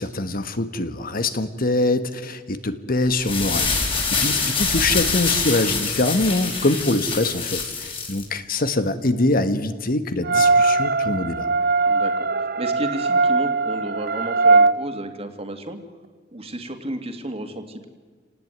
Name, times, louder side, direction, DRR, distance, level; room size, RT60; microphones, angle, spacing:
voice 1, 0.0-11.5, left 2 dB, 50° left, 10 dB, 1.5 m, -24 dB
sound 1, 3.1-8.2, left 4 dB, 30° left, 5.3 m, -25 dB
voice 2, 4.2-4.6 11.9-12.3 12.6-15.8 16.3-17.9, right 1 dB, 35° right, 7 dB, 2.5 m, -32 dB
sound 2, 10.2-14.7, right 3 dB, 55° right, 0.7 m, -19 dB
28.0 x 19.0 x 9.5 m, 1.5 s
head